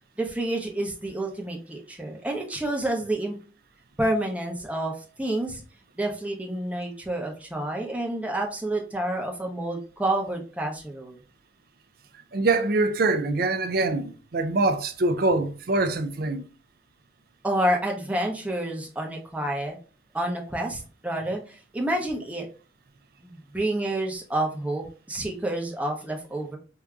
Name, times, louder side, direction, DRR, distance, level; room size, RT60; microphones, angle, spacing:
voice 1, 0.2-3.3 4.0-5.6 6.0-11.2 17.4-19.8 20.1-22.5 23.2-26.6, right 1 dB, 5° right, 0.7 m, -29 dB
voice 2, 12.3-16.4, right 2 dB, 50° right, 0.5 m, -24 dB
4.6 x 2.7 x 2.3 m
head